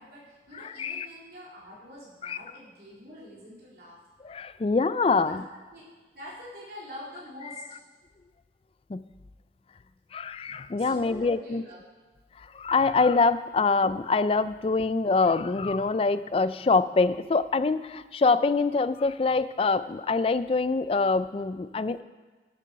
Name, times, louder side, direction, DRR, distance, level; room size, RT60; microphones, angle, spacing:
voice 1, 0.0-4.0 5.2-5.4 5.7-5.8 6.1-7.6 10.8-11.8, equal, 55° right, -6 dB, 3.9 m, -45 dB
voice 2, 0.6-1.1 2.2-2.4 4.2-5.4 8.9-9.0 10.1-11.6 12.4-22.0, left 4 dB, 30° left, 14 dB, 0.3 m, -25 dB
12.0 x 7.7 x 5.8 m, 1.3 s
head